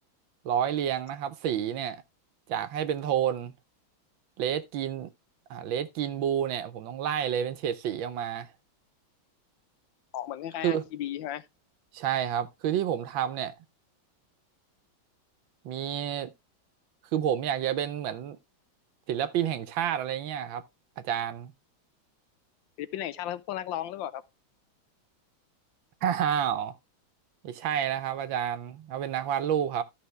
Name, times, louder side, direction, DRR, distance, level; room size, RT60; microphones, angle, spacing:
voice 1, 0.4-2.0 2.5-3.5 4.4-5.1 5.5-8.5 10.6-10.8 11.9-13.5 15.6-16.3 17.1-18.4 19.1-20.6 21.0-21.5 26.0-26.8 27.4-29.8, right 9 dB, 75° right, 1.4 m, -29 dB
voice 2, 10.1-11.5 22.8-24.2, left 12 dB, 75° left, 1.3 m, -35 dB
13.0 x 5.5 x 3.2 m
omnidirectional pair, 2.2 m